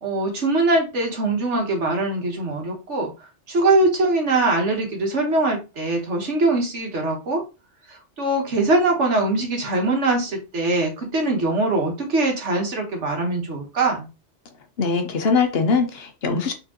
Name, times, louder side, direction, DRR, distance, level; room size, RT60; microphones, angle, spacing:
voice 1, 0.0-3.1 3.5-7.4 7.9-14.1, right 2 dB, 80° right, 1.7 m, -22 dB
voice 2, 14.8-16.5, left 4 dB, 60° left, 1.0 m, -21 dB
4.4 x 3.8 x 2.9 m
omnidirectional pair, 1.2 m